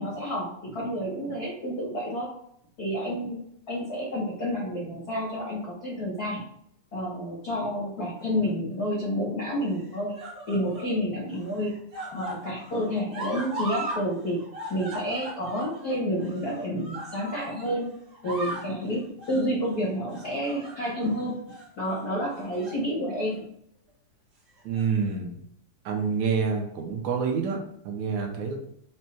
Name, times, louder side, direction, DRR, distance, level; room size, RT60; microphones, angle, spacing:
voice 1, 0.0-2.3 2.8-3.4 3.7-6.4 6.9-10.1 10.5-11.7 12.0-14.4 14.7-17.9 18.2-19.0 19.3-21.4 21.8-23.5, equal, 80° left, -5 dB, 0.8 m, -29 dB
sound 1, 8.2-8.8 9.7-10.9 11.3-14.0 14.3-17.8 18.1-18.7 19.2-19.5 20.1-21.1 21.5-21.7 22.3-22.8 23.2-23.4 24.5-25.1 26.0-26.1, right 1 dB, 60° right, 1.1 m, -38 dB
voice 2, 24.7-25.4 25.9-28.6, right 5 dB, 75° right, 2 dB, 1.9 m, -27 dB
5.3 x 2.1 x 4.2 m, 0.70 s
omnidirectional pair, 3.5 m